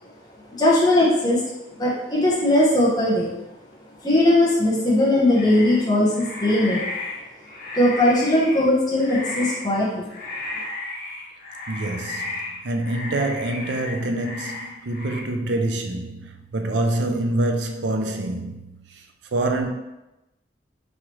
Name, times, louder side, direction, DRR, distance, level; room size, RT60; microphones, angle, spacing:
voice 1, 0.6-1.4 1.8-3.3 4.0-6.8 7.7-10.1, left 1 dB, 25° left, 0.9 m, -19 dB
sound 1, 5.4-8.7 9.0-9.7 10.1-15.2, left 2 dB, 55° left, 0.8 m, -34 dB
voice 2, 11.7-12.3 12.6-18.8 19.3-19.7, right 2 dB, 80° right, 0.5 m, -26 dB
4.7 x 3.2 x 3.0 m
head